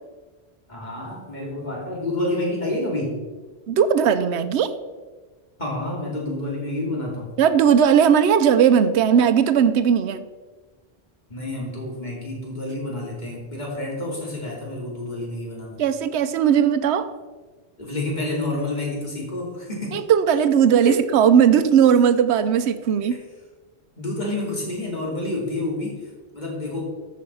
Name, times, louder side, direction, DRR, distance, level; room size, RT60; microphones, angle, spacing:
voice 1, 0.7-3.2 5.6-7.3 11.3-15.8 17.8-20.0 20.8-21.0 23.0-23.2 24.0-26.8, left 2 dB, 40° left, -3 dB, 3.3 m, -29 dB
voice 2, 3.7-4.7 7.4-10.3 15.8-17.1 19.9-23.2, right 8 dB, 80° right, 10 dB, 0.9 m, -18 dB
13.5 x 6.2 x 5.6 m, 1.3 s
omnidirectional pair, 1.1 m